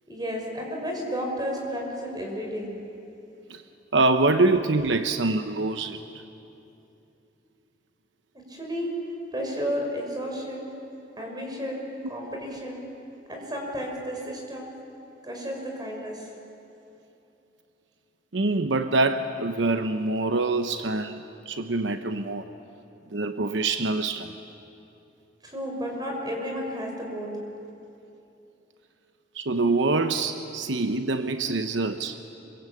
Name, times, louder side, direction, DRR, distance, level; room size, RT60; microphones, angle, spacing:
voice 1, 0.1-2.7 8.5-8.9 9.3-10.7 11.2-12.8 13.3-14.7 15.2-16.3 25.4-27.3, equal, 25° right, 0 dB, 5.5 m, -32 dB
voice 2, 3.9-6.0 18.3-22.5 23.1-24.4 29.3-32.2, right 3 dB, 80° right, 8 dB, 0.9 m, -25 dB
26.5 x 23.5 x 8.6 m, 2.9 s
head